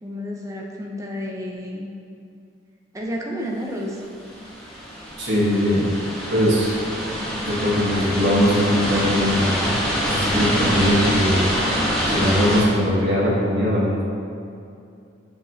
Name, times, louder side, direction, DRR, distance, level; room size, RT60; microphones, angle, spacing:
voice 1, 0.0-1.9 2.9-4.0, equal, 15° right, -1 dB, 0.5 m, -30 dB
sound 1, 4.2-12.6, equal, 5° left, 0.9 m, -25 dB
voice 2, 5.2-5.9 6.3-6.7 7.4-9.7 10.1-11.4 12.0-14.1, equal, 55° right, -7 dB, 1.1 m, -20 dB
6.7 x 5.0 x 2.8 m, 2.5 s
head